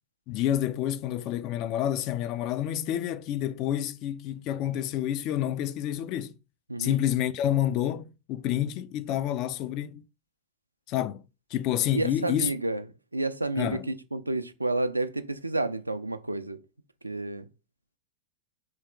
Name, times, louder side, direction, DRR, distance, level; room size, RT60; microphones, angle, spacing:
voice 1, 0.3-6.4 6.8-10.0 10.9-11.2 11.5-12.5 13.6-13.9, left 11 dB, 40° left, 0.3 m, -28 dB
voice 2, 11.9-12.8 13.1-16.6 17.0-17.4, right 2 dB, 85° right, 0.3 m, -30 dB
4.5 x 2.9 x 3.5 m
figure-of-eight pair, 90°, 0 cm